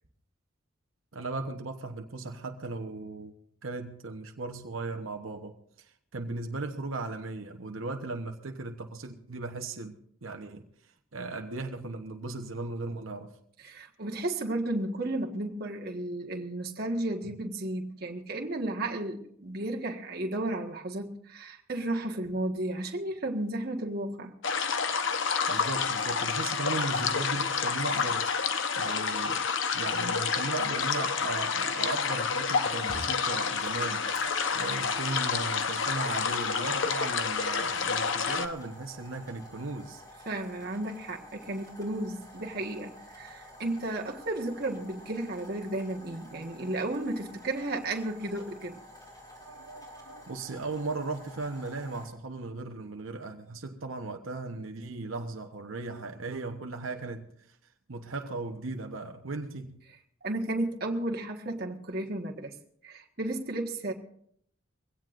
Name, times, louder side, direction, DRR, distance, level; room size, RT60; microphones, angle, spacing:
voice 1, 1.1-3.3 3.6-10.6 11.1-13.3 17.2-17.3 25.5-28.5 28.8-29.4 29.7-34.0 34.5-40.0 49.4-57.6 57.9-59.8, right 3 dB, 85° right, 1.1 m, -37 dB
voice 2, 13.6-24.3 40.2-48.8 60.2-62.5 62.8-63.9, right 1 dB, 50° right, 1.6 m, -33 dB
sound 1, 24.4-38.5, left 5 dB, 70° left, 1.0 m, -29 dB
sound 2, 32.3-32.4 32.9-52.1, left 1 dB, 20° left, 5.3 m, -50 dB
22.5 x 17.0 x 2.6 m
head